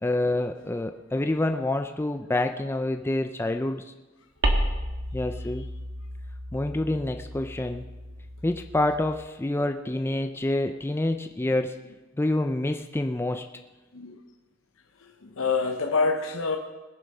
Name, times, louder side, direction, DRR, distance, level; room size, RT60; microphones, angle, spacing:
voice 1, 0.0-3.9 5.1-5.6 6.5-7.8 8.4-11.8 12.2-13.5, left 1 dB, 10° left, 6 dB, 0.4 m, -27 dB
sound 1, 4.4-9.3, right 1 dB, 60° right, 1.5 m, -32 dB
voice 2, 15.2-16.6, left 4 dB, 90° left, 4 dB, 0.9 m, -26 dB
20.0 x 7.2 x 5.5 m, 1.1 s
head